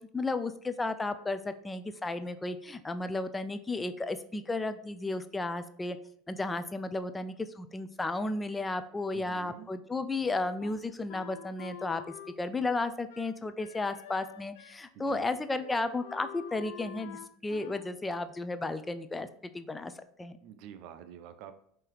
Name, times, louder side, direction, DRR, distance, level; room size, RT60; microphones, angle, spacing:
voice 1, 0.1-6.0 6.3-12.0 12.4-19.3 19.5-19.9 20.2-20.4, left 2 dB, 15° left, 10 dB, 0.4 m, -33 dB
voice 2, 9.1-9.7 14.9-15.3 20.4-21.5, right 9 dB, 60° right, 10 dB, 0.5 m, -47 dB
Wind instrument woodwind instrument, 10.6-14.8 15.1-15.3 15.6-17.9, left 10 dB, 80° left, 0.4 m, -47 dB
5.4 x 2.8 x 3.3 m, 0.67 s
hypercardioid pair, 100°, 0 cm